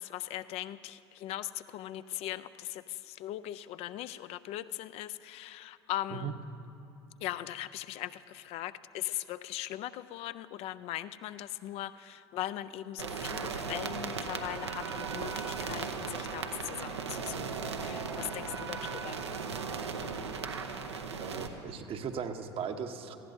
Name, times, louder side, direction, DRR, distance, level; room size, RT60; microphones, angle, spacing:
voice 1, 0.0-6.3 7.2-19.2, left 14 dB, 50° left, 13 dB, 0.4 m, -39 dB
sound 1, 13.0-21.5, right 5 dB, 85° right, 0.8 m, -37 dB
voice 2, 21.2-23.2, right 7 dB, 40° right, 7 dB, 0.9 m, -37 dB
19.0 x 15.0 x 2.7 m, 2.9 s
figure-of-eight pair, 70°, 14 cm